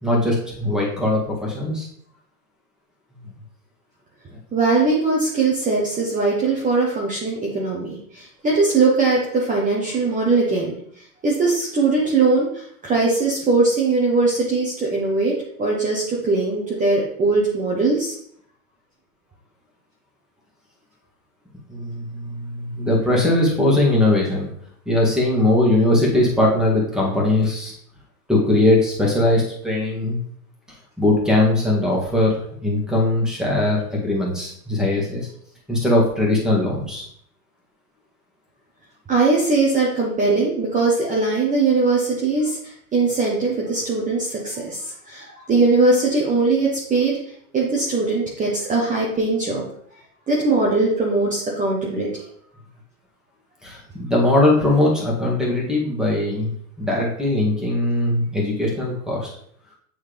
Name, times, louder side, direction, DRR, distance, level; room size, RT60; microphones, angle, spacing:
voice 1, 0.0-1.9 21.7-24.5 24.9-27.7 28.3-30.2 31.0-35.3 35.7-37.1 53.6-56.5 56.8-59.3, left 1 dB, ahead, -3 dB, 1.8 m, -20 dB
voice 2, 4.5-10.7 11.2-15.3 15.6-18.1 39.1-47.2 47.5-49.6 50.3-52.1, right 3 dB, 15° right, -4 dB, 1.1 m, -20 dB
8.5 x 3.5 x 3.4 m, 0.65 s
hypercardioid pair, 120°, 46 cm